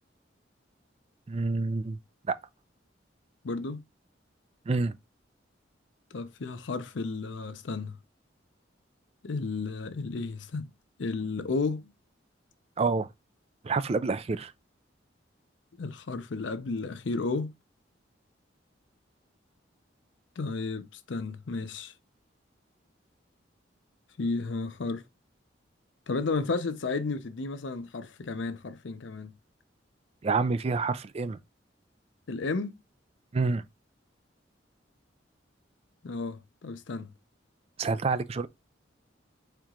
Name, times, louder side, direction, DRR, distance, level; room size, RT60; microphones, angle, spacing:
voice 1, 1.3-2.0 2.3-2.4 4.7-4.9 12.8-13.1 13.6-14.5 30.2-31.4 33.3-33.6 37.8-38.5, right 4 dB, 35° right, 0.4 m, -28 dB
voice 2, 3.4-3.8 6.1-8.0 9.2-10.7 11.0-11.9 15.8-17.5 20.4-21.9 24.2-25.0 26.1-29.3 32.3-32.8 36.0-37.1, left 3 dB, 75° left, 0.6 m, -33 dB
4.5 x 2.9 x 3.6 m
head